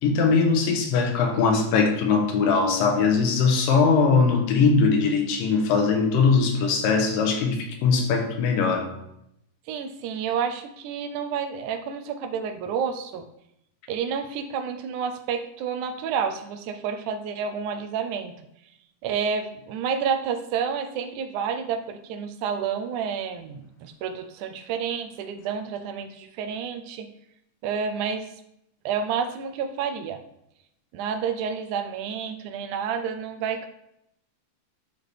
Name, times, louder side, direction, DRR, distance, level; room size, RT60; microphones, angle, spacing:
voice 1, 0.0-8.9, left 5 dB, 85° left, 3 dB, 2.7 m, -21 dB
voice 2, 9.7-13.3 13.9-18.3 19.0-27.1 27.6-28.3 28.9-30.2 30.9-33.7, right 7 dB, 80° right, 8 dB, 1.9 m, -29 dB
11.5 x 4.2 x 3.4 m, 0.80 s
omnidirectional pair, 3.8 m